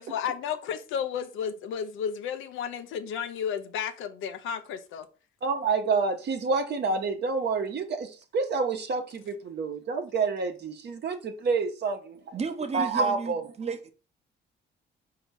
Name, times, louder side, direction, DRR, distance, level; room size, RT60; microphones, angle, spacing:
voice 1, 0.0-5.1, left 7 dB, 85° left, 0.6 m, -33 dB
voice 2, 5.4-12.3 12.7-13.4, right 4 dB, 60° right, 0.9 m, -28 dB
voice 3, 12.3-13.9, right 5 dB, 30° right, 0.8 m, -33 dB
4.5 x 2.8 x 4.1 m
cardioid pair, 90°, 20 cm